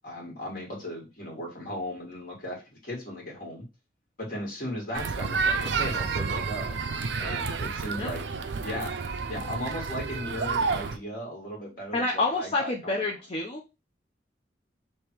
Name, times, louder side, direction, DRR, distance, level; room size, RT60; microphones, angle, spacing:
voice 1, 0.0-3.6 4.2-6.8 7.2-8.2 8.6-9.0 9.3-13.1, left 1 dB, 50° left, -2 dB, 2.0 m, -37 dB
sound 1, 4.9-11.0, right 4 dB, 75° right, 0.5 m, -30 dB
voice 2, 11.9-13.6, left 2 dB, 35° left, -2 dB, 0.7 m, -28 dB
3.5 x 3.0 x 4.5 m, 0.28 s
head